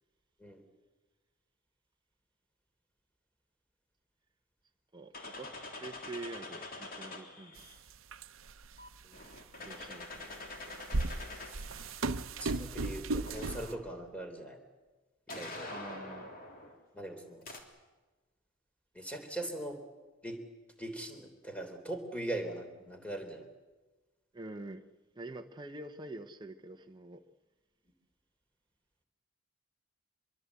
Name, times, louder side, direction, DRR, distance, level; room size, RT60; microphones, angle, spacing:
voice 1, 4.9-7.6 9.6-10.3 15.7-16.3 24.3-24.9 25.1-27.2, right 2 dB, 20° right, 0.9 m, -46 dB
sound 1, 5.1-7.8 8.8-12.1 13.3-14.1 15.3-16.8 17.4-17.6, left 2 dB, 45° left, 3.2 m, -45 dB
sound 2, 7.6-7.7 8.1-8.6 9.3-9.4 10.4-13.8, right 2 dB, 80° right, 0.8 m, -35 dB
voice 2, 12.4-14.6 15.3-15.7 16.9-17.4 18.9-19.8 20.2-20.4 20.8-23.5, right 1 dB, 5° left, 3.3 m, -41 dB
25.0 x 22.5 x 8.3 m
head